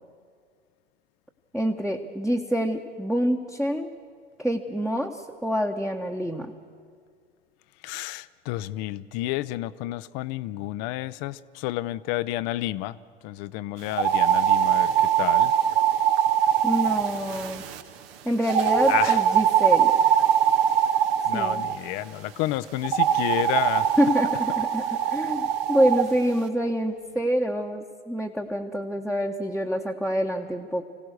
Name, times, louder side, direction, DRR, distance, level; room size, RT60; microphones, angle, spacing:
voice 1, 1.5-3.9 4.4-6.5 16.6-17.6 18.2-19.9 21.3-21.6 24.0-30.9, equal, ahead, 1 dB, 1.1 m, -26 dB
voice 2, 7.8-13.0 13.2-15.5 18.9-19.2 21.2-23.9, left 16 dB, 55° left, 16 dB, 0.7 m, -30 dB
sound 1, 13.9-17.8 18.5-21.8 22.8-26.1, right 9 dB, 70° right, 1.3 m, -22 dB
25.0 x 17.0 x 6.5 m, 2.1 s
hypercardioid pair, 75°, 31 cm